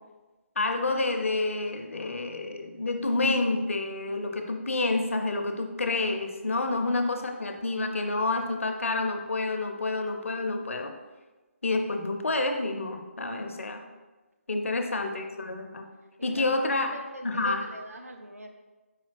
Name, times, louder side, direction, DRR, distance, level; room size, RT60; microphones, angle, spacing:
voice 1, 0.6-10.9 11.6-13.8 14.5-15.9 16.2-16.9 17.2-17.7, left 2 dB, 65° left, 5 dB, 0.5 m, -28 dB
voice 2, 16.2-18.5, equal, 90° right, 3 dB, 0.6 m, -43 dB
4.8 x 2.8 x 3.2 m, 1.2 s
figure-of-eight pair, 145°, 8 cm